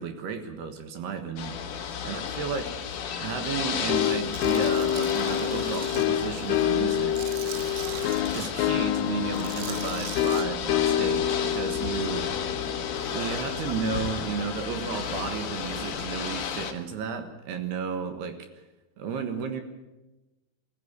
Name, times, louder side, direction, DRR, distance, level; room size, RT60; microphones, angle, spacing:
voice 1, 0.0-1.7 2.0-2.9 3.2-7.5 8.3-12.4 13.1-18.4 19.0-19.6, right 6 dB, 65° right, 7 dB, 3.0 m, -33 dB
Ocean / Boat Water vehicle, 1.4-16.7, left 7 dB, 60° left, 2.4 m, -33 dB
sound 1, 3.9-14.4, left 11 dB, 80° left, 3.4 m, -28 dB
Tools, 4.3-6.0 6.5-8.5 9.3-10.4, right 11 dB, 85° right, 3.8 m, -41 dB
20.5 x 14.5 x 9.5 m, 1.1 s
omnidirectional pair, 5.7 m